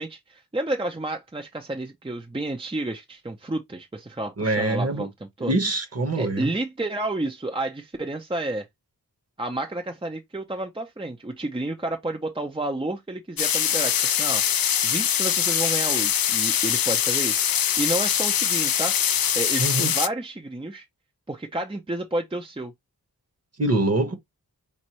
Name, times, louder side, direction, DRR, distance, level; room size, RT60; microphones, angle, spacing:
voice 1, 0.0-5.5 6.1-8.7 9.4-14.4 14.8-18.9 19.3-20.8 21.3-22.7, right 2 dB, 15° right, 0.6 m, -30 dB
voice 2, 4.4-5.1 5.4-6.5 19.6-19.9 23.6-24.2, right 2 dB, 40° right, 1.3 m, -24 dB
sound 1, 13.4-20.1, left 9 dB, 70° left, 0.5 m, -23 dB
5.4 x 2.5 x 3.0 m
wide cardioid pair, 75°, 37 cm